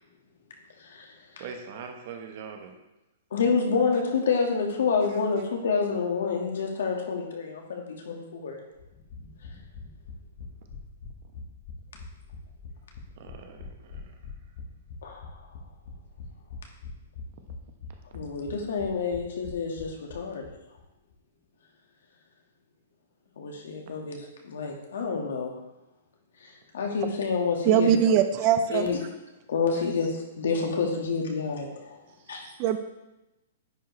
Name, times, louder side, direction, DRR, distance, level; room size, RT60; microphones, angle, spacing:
voice 1, 1.4-2.7 13.2-14.1 32.1-32.5, right 6 dB, 50° right, 4 dB, 1.0 m, -42 dB
voice 2, 3.3-8.6 15.0-15.3 18.1-20.5 23.4-25.6 26.7-27.9 28.7-29.0 29.5-32.0 32.3-32.5, left 5 dB, 80° left, 1 dB, 1.6 m, -28 dB
sound 1, 8.8-20.5 20.8-20.9 21.1-21.2, left 4 dB, 45° left, 1.5 m, -43 dB
voice 3, 27.6-28.9 32.6-32.8, right 8 dB, 30° right, 10 dB, 0.4 m, -21 dB
10.0 x 4.7 x 3.2 m, 0.97 s
hypercardioid pair, 160°, 0 cm